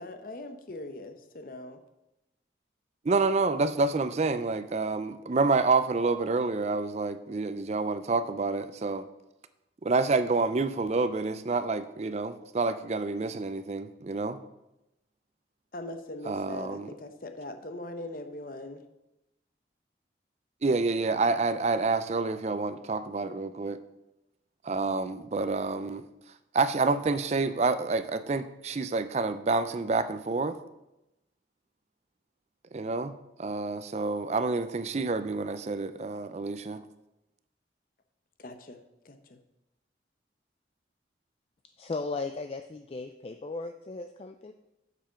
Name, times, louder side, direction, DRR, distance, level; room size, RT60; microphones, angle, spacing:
voice 1, 0.0-1.8 15.7-18.8 38.4-38.8 39.0-39.4, left 1 dB, 50° left, 8 dB, 0.8 m, -41 dB
voice 2, 3.1-9.0 9.8-14.4 16.3-16.9 20.6-23.8 24.6-26.0 26.5-30.6 32.7-36.8, right 3 dB, 35° right, 12 dB, 0.4 m, -28 dB
voice 3, 41.8-44.5, left 3 dB, 30° left, 7 dB, 0.3 m, -36 dB
7.5 x 7.0 x 5.7 m, 0.92 s
head